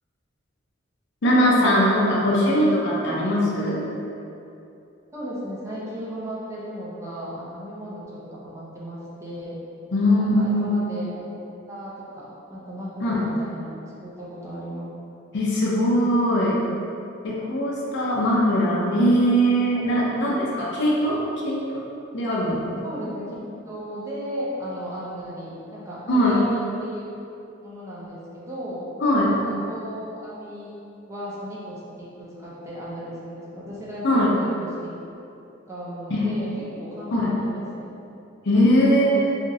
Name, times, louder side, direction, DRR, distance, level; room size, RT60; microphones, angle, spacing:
voice 1, 1.2-3.8 9.9-10.7 13.0-13.2 15.3-16.6 17.2-21.2 21.4-21.8 22.1-22.8 26.1-26.4 29.0-29.3 34.0-34.3 36.1-36.3 37.1-37.4 38.5-39.3, equal, 60° left, -5 dB, 0.5 m, -21 dB
voice 2, 2.9-3.2 5.1-9.6 10.1-11.2 11.7-14.9 20.0-20.4 22.8-23.3 23.7-27.1 27.6-28.8 29.3-34.9 35.7-36.5 36.8-38.0 38.5-39.3, equal, 15° right, -8 dB, 0.5 m, -36 dB
3.0 x 2.5 x 2.6 m, 2.7 s
head